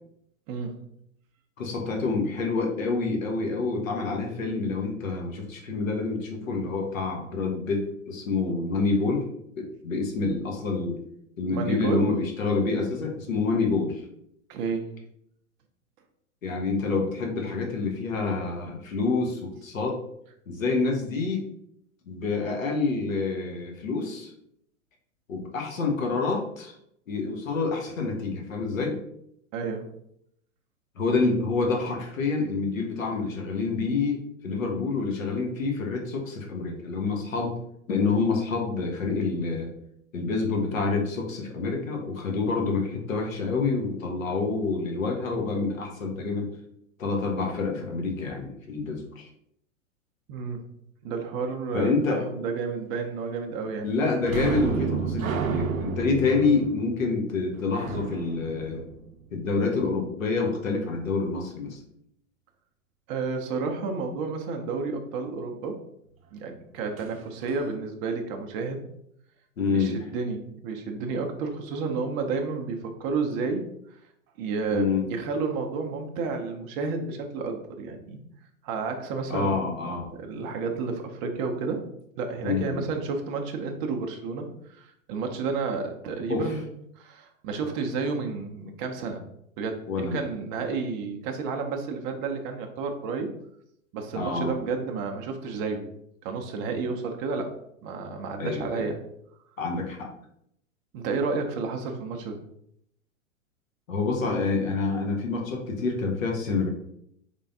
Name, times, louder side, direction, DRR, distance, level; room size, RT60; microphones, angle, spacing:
voice 1, 0.5-0.9 11.5-12.0 14.5-14.9 29.5-29.9 50.3-50.7 51.0-53.9 63.1-65.8 66.3-68.8 69.7-74.0 74.4-78.2 78.6-79.7 80.1-81.9 82.2-86.7 87.0-89.2 89.6-93.3 93.9-95.9 96.2-97.5 97.8-99.0 100.9-102.4, right 4 dB, 30° right, 4 dB, 0.5 m, -31 dB
voice 2, 1.6-9.3 9.5-11.0 11.4-14.0 16.4-20.0 20.5-21.4 22.1-24.3 25.3-26.7 27.1-29.0 31.0-37.5 37.9-39.7 40.1-46.5 47.0-49.3 51.7-52.2 53.8-58.8 59.3-61.8 69.6-70.0 74.7-75.1 79.3-80.1 82.4-82.9 86.3-86.5 89.9-90.2 94.1-94.6 98.4-98.9 99.6-100.1 103.9-106.7, left 4 dB, 75° left, 1 dB, 1.1 m, -27 dB
sound 1, 54.2-59.6 67.0-67.1 67.5-67.7, right 6 dB, 85° right, 0.5 m, -31 dB
3.7 x 3.4 x 2.7 m, 0.74 s
figure-of-eight pair, 105°, 40 cm